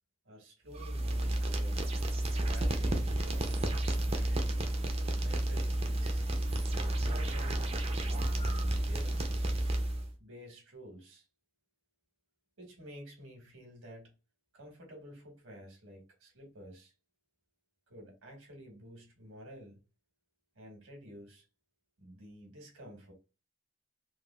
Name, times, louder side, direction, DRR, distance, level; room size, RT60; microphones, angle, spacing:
voice 1, 0.2-1.9 2.4-4.6 5.2-6.3 7.0-9.6 10.2-11.2 12.6-14.1 14.5-16.9 17.9-19.8 20.5-21.4 22.0-23.1, equal, 85° right, 1.3 m, -51 dB
sound 1, 0.7-10.1, right 1 dB, 30° right, 0.4 m, -31 dB
3.3 x 2.3 x 2.2 m
head